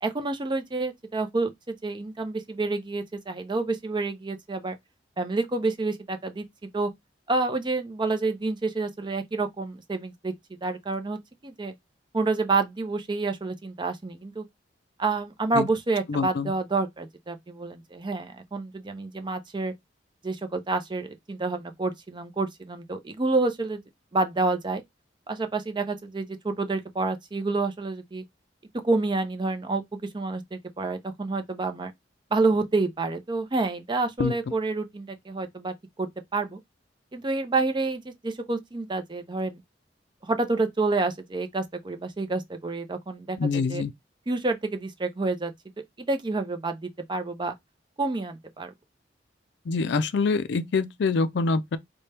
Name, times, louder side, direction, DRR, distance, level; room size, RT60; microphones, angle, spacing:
voice 1, 0.0-4.8 5.2-6.4 6.7-6.9 7.3-10.3 10.6-11.7 12.1-14.4 15.0-19.7 20.2-23.8 24.1-24.8 25.3-28.2 28.8-29.8 30.1-31.9 32.3-36.6 37.1-39.6 40.2-43.8 44.3-45.5 46.0-47.5 48.0-48.7, right 3 dB, 25° right, 0.5 m, -28 dB
voice 2, 16.1-16.5 34.2-34.4 43.4-43.9 49.7-51.8, left 4 dB, 70° left, 0.4 m, -25 dB
4.3 x 2.2 x 3.3 m
head